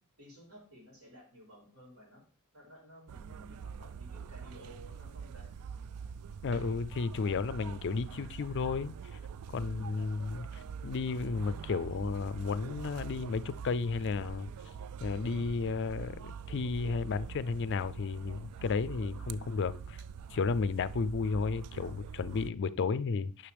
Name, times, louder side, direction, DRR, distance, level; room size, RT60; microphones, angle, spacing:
voice 1, 0.2-2.2 2.5-5.5 9.5-9.9, equal, 70° right, 4.6 m, -54 dB
sound 1, 3.1-22.5, right 6 dB, 90° right, 0.3 m, -44 dB
voice 2, 6.4-8.9 9.5-14.5 15.0-20.0 20.3-23.5, left 4 dB, 55° left, 0.4 m, -33 dB
10.0 x 5.6 x 3.4 m
head